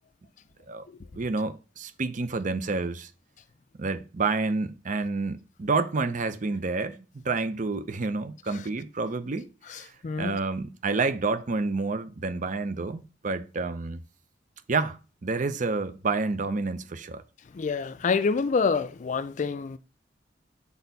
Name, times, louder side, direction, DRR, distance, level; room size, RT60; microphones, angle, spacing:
voice 1, 1.1-3.1 3.8-9.9 10.2-14.0 14.7-17.2, right 3 dB, 45° right, 0.6 m, -29 dB
voice 2, 9.7-10.4 17.5-19.8, left 5 dB, 45° left, 0.4 m, -27 dB
6.9 x 4.3 x 4.0 m
head